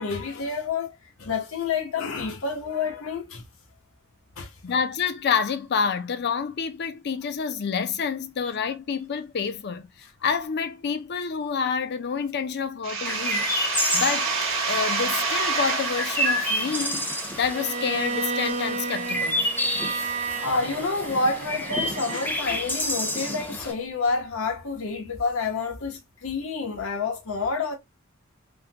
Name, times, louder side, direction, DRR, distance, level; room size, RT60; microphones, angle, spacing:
voice 1, 0.0-3.4 4.4-4.5 19.7-27.7, left 4 dB, 90° left, 0.9 m, -29 dB
voice 2, 4.6-9.9 10.2-13.5 13.9-14.3 14.7-19.5, left 6 dB, 55° left, 0.5 m, -28 dB
sound 1, 12.8-18.4, right 4 dB, 70° right, 1.0 m, -29 dB
Chirp tweet, 13.1-23.7, equal, 10° left, 0.6 m, -30 dB
Bowed string instrument, 17.5-22.4, right 4 dB, 35° right, 0.4 m, -32 dB
3.6 x 2.2 x 2.7 m
head